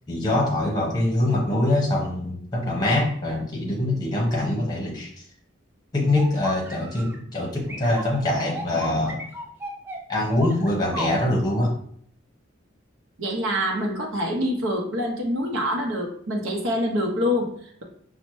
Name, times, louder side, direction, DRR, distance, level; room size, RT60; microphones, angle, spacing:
voice 1, 0.1-5.1 5.9-9.2 10.1-11.8, left 1 dB, 20° left, -2 dB, 0.8 m, -24 dB
sound 1, 6.2-7.2 7.7-11.2, equal, 10° right, 0.4 m, -34 dB
voice 2, 13.2-17.8, equal, 80° right, 1 dB, 0.7 m, -26 dB
5.2 x 2.1 x 3.0 m, 0.62 s
head